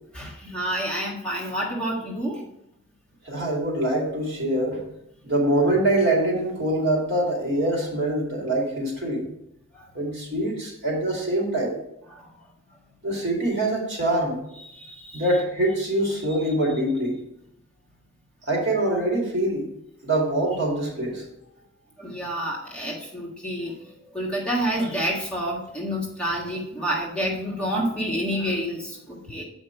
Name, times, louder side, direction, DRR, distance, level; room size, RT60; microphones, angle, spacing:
voice 1, 0.1-2.4 12.1-12.3 14.7-15.3 22.0-29.4, equal, 5° left, -5 dB, 1.6 m, -29 dB
voice 2, 3.3-4.8 5.2-9.2 9.9-11.8 13.0-14.4 15.1-17.2 18.5-19.6 20.0-21.2, right 1 dB, 55° right, -1 dB, 2.2 m, -24 dB
7.5 x 5.0 x 4.4 m, 0.80 s
head